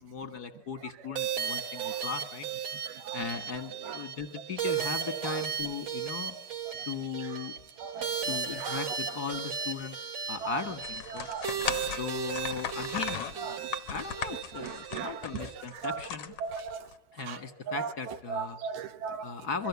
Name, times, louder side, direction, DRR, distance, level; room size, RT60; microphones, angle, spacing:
voice 1, 0.0-2.5 3.1-6.4 6.8-7.5 8.2-10.0 10.3-11.3 12.0-13.6 13.9-16.3 17.1-18.6 19.2-19.7, left 5 dB, 45° left, 10 dB, 1.3 m, -37 dB
sound 1, 1.2-15.6, right 7 dB, 40° right, 1.6 m, -36 dB
sound 2, 10.8-16.9, left 8 dB, 65° left, 1.5 m, -37 dB
voice 2, 11.1-11.5 13.5-13.6 14.6-15.2 15.8-16.0 16.4-16.8 17.3-17.4 17.8-17.9 18.3-19.3, right 6 dB, 75° right, 9 dB, 3.3 m, -36 dB
28.0 x 23.5 x 8.4 m, 0.78 s
omnidirectional pair, 4.5 m